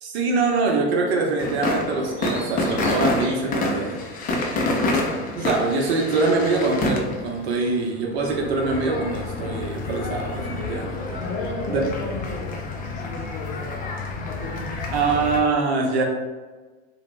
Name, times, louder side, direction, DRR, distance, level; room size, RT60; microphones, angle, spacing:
voice 1, 0.0-4.0 5.3-11.2 11.7-11.8 14.9-16.0, right 3 dB, 70° right, 1 dB, 0.7 m, -24 dB
sound 1, 1.4-15.4, left 2 dB, 25° left, 0.4 m, -28 dB
Bird vocalization bird call bird song, 2.0-7.7, right 2 dB, 40° right, 0.9 m, -45 dB
voice 2, 11.1-15.2, left 3 dB, 55° left, 0 dB, 0.8 m, -35 dB
2.8 x 2.0 x 3.1 m, 1.3 s
hypercardioid pair, 105°, 34 cm